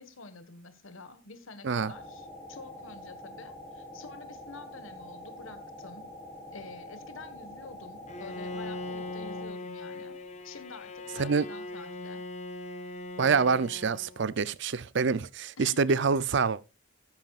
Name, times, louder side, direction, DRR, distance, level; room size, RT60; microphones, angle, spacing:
voice 1, 0.0-6.1 6.5-10.2 10.4-12.2 15.6-16.0, left 3 dB, 80° left, 1.6 m, -48 dB
sound 1, 1.7-9.5, left 1 dB, 10° left, 4.4 m, -46 dB
Bowed string instrument, 8.1-14.4, left 2 dB, 35° left, 1.1 m, -40 dB
voice 2, 13.2-16.6, right 5 dB, 60° right, 0.6 m, -26 dB
13.5 x 10.0 x 2.4 m
head